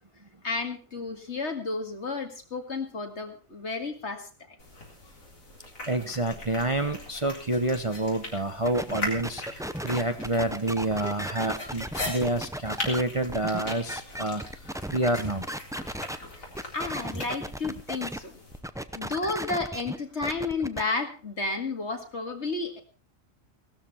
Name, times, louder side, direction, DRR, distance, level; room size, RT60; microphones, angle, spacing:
voice 1, 0.4-4.6 16.4-16.5 16.7-18.4 18.9-22.8, left 3 dB, 55° left, 4 dB, 2.4 m, -32 dB
sound 1, 4.6-18.6, left 2 dB, 80° left, 4.1 m, -40 dB
voice 2, 5.9-14.4 14.9-15.4, right 1 dB, 30° right, 7 dB, 0.8 m, -28 dB
sound 2, 8.6-16.2 16.5-18.2 18.5-20.8, right 1 dB, 5° right, 0.4 m, -36 dB
17.5 x 13.0 x 4.3 m, 0.36 s
omnidirectional pair, 1.4 m